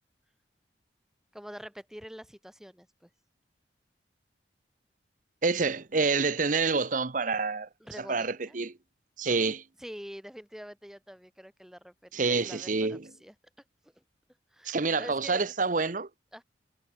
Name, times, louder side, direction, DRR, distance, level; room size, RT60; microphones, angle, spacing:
voice 1, 1.3-3.1 7.8-8.6 9.8-13.3 13.8-13.9 14.5-15.5 16.3-16.4, equal, 5° right, 2.5 m, -45 dB
voice 2, 5.4-7.7 8.0-8.8 9.2-9.6 12.1-13.1 14.6-16.1, right 4 dB, 50° right, 1.0 m, -27 dB
head